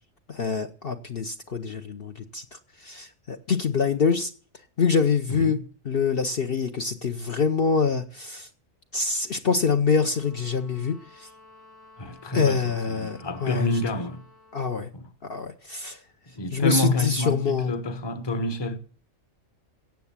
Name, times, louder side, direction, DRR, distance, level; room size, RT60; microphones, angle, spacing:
voice 1, 0.3-2.4 2.8-4.3 4.8-5.6 5.8-8.5 8.9-11.3 12.3-13.7 14.5-14.9 15.2-16.0 16.5-17.7, left 5 dB, 50° left, 1.0 m, -25 dB
voice 2, 5.3-5.6 12.0-14.2 14.9-15.1 16.4-18.8, left 2 dB, 20° left, 1.0 m, -28 dB
sound 1, 9.9-14.7, left 2 dB, 75° left, 6.6 m, -53 dB
17.0 x 7.1 x 7.3 m
omnidirectional pair, 1.3 m